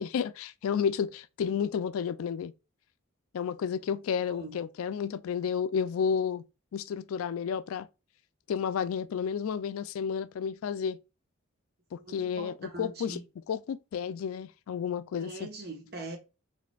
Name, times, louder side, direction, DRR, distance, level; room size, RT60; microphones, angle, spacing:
voice 1, 0.0-2.5 3.3-6.4 6.7-7.9 8.5-11.0 11.9-13.2 13.5-15.5, left 7 dB, 80° left, 0.3 m, -31 dB
voice 2, 4.3-4.6 12.0-13.2 15.1-16.2, right 2 dB, 50° right, 1.1 m, -42 dB
4.1 x 3.3 x 2.3 m
head